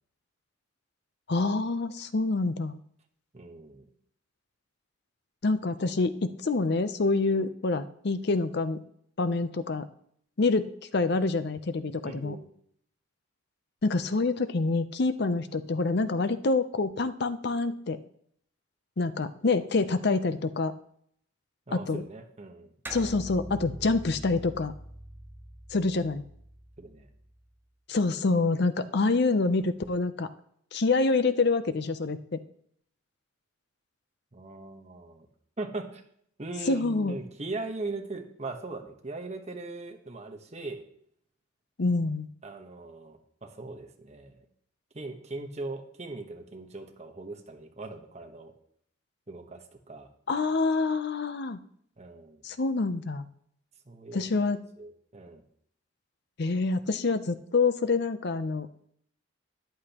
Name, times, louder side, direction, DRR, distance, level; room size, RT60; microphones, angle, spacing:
voice 1, 1.3-2.8 5.4-8.8 9.2-9.9 10.4-12.4 13.8-18.0 19.0-20.7 21.7-22.0 22.9-24.7 25.7-26.2 27.9-30.3 30.7-32.4 36.7-37.2 41.8-42.3 50.3-51.6 52.4-53.2 54.1-54.6 56.4-58.7, left 3 dB, 55° left, 12 dB, 0.6 m, -26 dB
voice 2, 3.3-3.9 12.0-12.5 21.7-22.7 26.8-27.1 34.3-35.3 35.6-36.0 36.4-40.8 42.4-44.5 44.9-48.5 49.3-50.1 52.0-52.4 53.8-55.4, right 2 dB, 35° right, 4 dB, 1.1 m, -40 dB
sound 1, 22.9-27.6, right 1 dB, 10° right, 0.8 m, -44 dB
13.5 x 10.5 x 3.0 m, 0.67 s
head